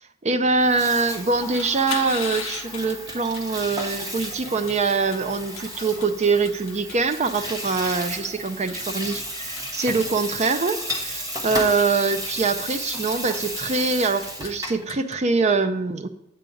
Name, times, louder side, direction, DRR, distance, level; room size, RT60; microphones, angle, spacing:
voice 1, 0.2-16.1, right 4 dB, 30° right, 10 dB, 0.5 m, -24 dB
Water tap faucet / Sink (filling or washing), 0.5-14.9, equal, 15° right, 1.0 m, -33 dB
sound 1, 1.4-15.1, left 8 dB, 65° left, 0.8 m, -40 dB
9.1 x 7.9 x 3.8 m, 0.83 s
head